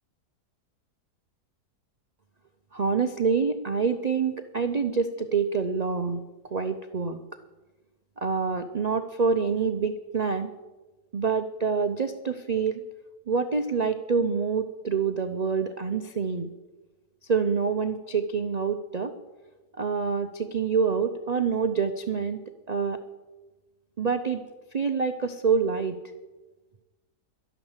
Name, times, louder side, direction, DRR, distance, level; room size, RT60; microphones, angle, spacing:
voice 1, 2.7-7.2 8.2-10.5 11.1-12.8 13.3-16.5 17.3-19.1 19.8-22.4 22.7-23.0 24.0-24.4 24.7-26.0, right 5 dB, 75° right, 8 dB, 0.3 m, -26 dB
12.0 x 11.0 x 7.3 m, 1.2 s
omnidirectional pair, 1.7 m